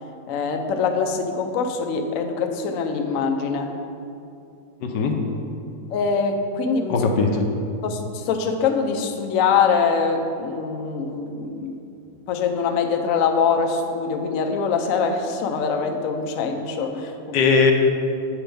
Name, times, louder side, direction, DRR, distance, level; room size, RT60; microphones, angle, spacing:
voice 1, 0.3-3.7 5.9-7.1 7.8-11.8 12.3-17.4, left 5 dB, 65° left, 4 dB, 0.8 m, -23 dB
voice 2, 4.8-5.2 6.9-7.4 17.3-17.7, left 4 dB, 80° left, 3 dB, 1.4 m, -19 dB
8.5 x 4.6 x 5.1 m, 2.6 s
omnidirectional pair, 1.9 m